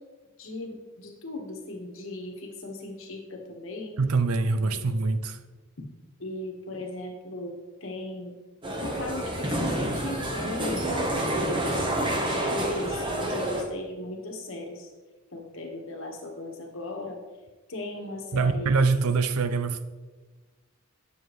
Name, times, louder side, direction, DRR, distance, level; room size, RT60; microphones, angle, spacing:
voice 1, 0.4-4.0 4.6-5.1 6.2-8.3 8.8-11.9 12.5-14.9 15.3-17.2 17.7-18.7, left 2 dB, 60° left, 2 dB, 1.3 m, -38 dB
voice 2, 4.0-5.4 18.3-19.8, right 4 dB, 80° right, 11 dB, 0.5 m, -24 dB
sound 1, 8.6-13.6, right 1 dB, 20° right, 0.9 m, -28 dB
8.7 x 7.2 x 3.1 m, 1.3 s
head